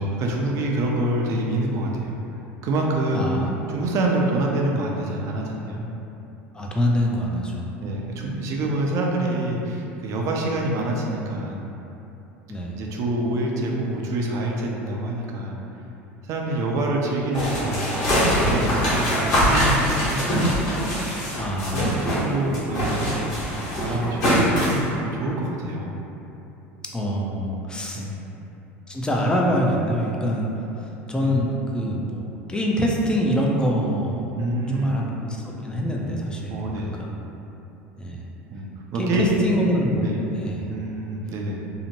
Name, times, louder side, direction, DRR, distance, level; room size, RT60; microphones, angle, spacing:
voice 1, 0.0-2.1 2.6-3.3 3.7-5.9 7.8-11.7 12.7-15.6 16.2-18.0 18.4-20.5 21.7-23.2 23.8-25.9 27.9-28.2 31.2-31.4 34.3-35.1 36.5-37.0 38.5-39.7 40.0-40.2 40.7-41.6, right 1 dB, 50° right, -1 dB, 0.5 m, -26 dB
voice 2, 3.1-3.5 6.5-7.7 12.5-12.8 21.4-22.1 23.8-24.0 26.9-28.0 28.9-30.5 30.8-34.3 34.7-35.1 35.4-37.1 38.0-38.2 38.9-40.0 40.4-40.7, equal, 15° left, -2 dB, 0.4 m, -25 dB
sound 1, 17.3-22.3 22.5-24.8, equal, 50° left, 1.2 m, -23 dB
2.7 x 2.1 x 2.8 m, 2.9 s
hypercardioid pair, 85°, 7 cm